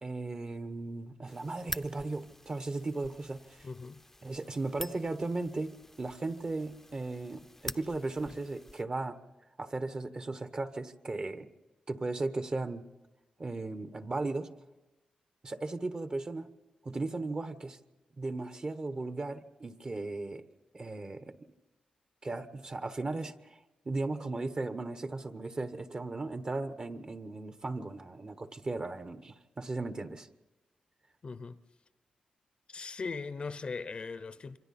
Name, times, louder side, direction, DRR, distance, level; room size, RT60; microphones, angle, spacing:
voice 1, 0.0-3.7 4.2-9.2 9.6-11.5 11.9-12.8 13.4-14.5 15.4-16.5 16.8-17.8 18.2-20.4 20.7-21.4 22.2-23.6 23.8-30.3, right 2 dB, 35° right, 1.1 m, -36 dB
sound 1, 1.3-8.8, left 1 dB, 10° left, 0.7 m, -47 dB
voice 2, 3.6-4.0 31.2-31.6 32.7-34.6, left 4 dB, 45° left, 0.8 m, -39 dB
27.5 x 24.5 x 4.3 m
cardioid pair, 80°, 2 cm